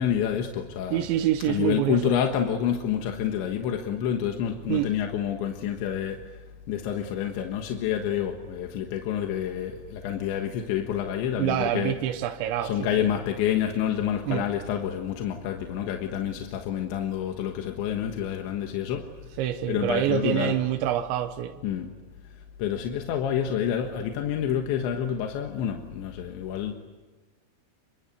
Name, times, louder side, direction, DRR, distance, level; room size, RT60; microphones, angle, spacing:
voice 1, 0.0-1.1 1.5-11.9 12.6-19.2 19.7-20.6 21.6-21.9 22.6-26.7, left 9 dB, 85° left, 3.8 m, -28 dB
voice 2, 0.9-2.2 4.7-4.9 11.4-13.1 14.3-14.5 19.4-21.6, right 12 dB, 85° right, 3.3 m, -26 dB
28.5 x 24.0 x 8.3 m
omnidirectional pair, 5.1 m